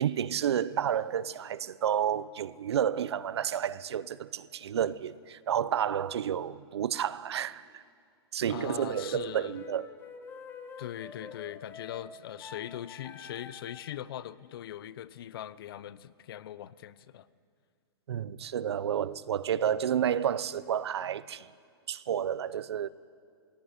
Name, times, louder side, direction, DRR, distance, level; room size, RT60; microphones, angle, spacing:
voice 1, 0.0-7.8 8.3-9.9 18.1-21.5 21.9-22.9, right 9 dB, 85° right, 0.8 m, -30 dB
voice 2, 8.5-9.6 10.8-17.3, left 11 dB, 60° left, 0.8 m, -41 dB
sound 1, 8.8-13.9, left 5 dB, 15° left, 1.6 m, -47 dB
21.5 x 17.0 x 9.6 m
hypercardioid pair, 150°, 13 cm